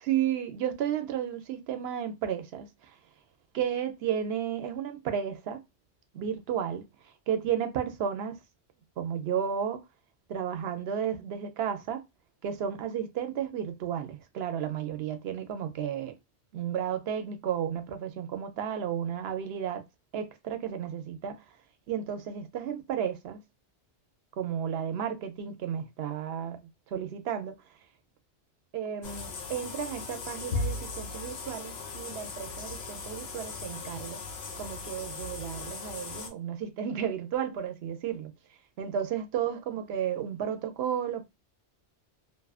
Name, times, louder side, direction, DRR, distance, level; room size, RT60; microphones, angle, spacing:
voice 1, 0.1-2.7 3.5-5.6 6.1-6.8 7.3-8.4 9.0-9.8 10.3-12.0 12.4-16.1 16.5-19.8 20.1-21.4 21.9-23.4 24.4-26.6 26.9-27.6 28.7-34.2 34.6-38.3 38.8-41.2, right 9 dB, 70° right, 0.8 m, -33 dB
sound 1, 29.0-36.3, left 3 dB, 75° left, 0.9 m, -38 dB
2.6 x 2.4 x 2.3 m
omnidirectional pair, 1.1 m